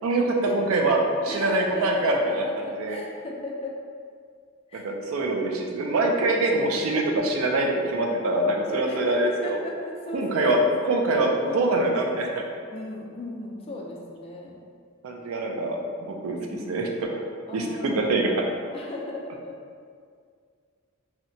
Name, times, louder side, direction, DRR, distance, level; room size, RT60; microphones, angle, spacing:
voice 1, 0.0-2.4 2.8-3.0 4.7-9.6 10.1-10.6 10.9-12.4 15.0-16.4 16.7-17.2 17.5-18.3, right 2 dB, 80° right, 1 dB, 0.3 m, -24 dB
voice 2, 1.3-3.8 4.7-4.9 6.3-6.7 8.0-8.3 8.7-10.9 11.4-11.8 12.7-14.6 16.3-16.8 17.5-18.3 18.7-19.6, left 1 dB, 30° left, -2 dB, 0.3 m, -37 dB
2.7 x 2.1 x 2.6 m, 2.1 s
head